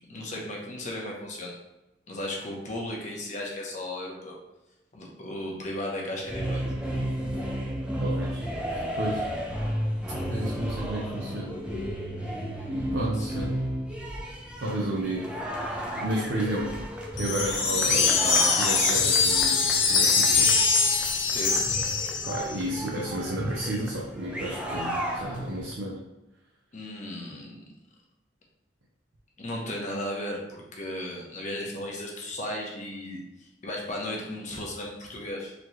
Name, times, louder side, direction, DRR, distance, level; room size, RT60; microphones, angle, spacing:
voice 1, 0.1-1.5 2.1-4.3 4.9-6.6 13.2-13.4 21.3-21.6 26.7-27.6 29.4-35.5, left 1 dB, 40° left, -2 dB, 0.9 m, -35 dB
sound 1, 6.2-25.7, equal, 5° right, 0.5 m, -33 dB
voice 2, 8.0-9.3 10.1-11.6 12.9-13.6 14.6-15.4 15.7-16.9 17.2-20.5 22.2-26.0, right 1 dB, 70° right, -3 dB, 0.6 m, -32 dB
sound 2, 17.2-22.5, left 5 dB, 85° left, 0.7 m, -23 dB
4.0 x 3.0 x 3.1 m, 0.99 s
head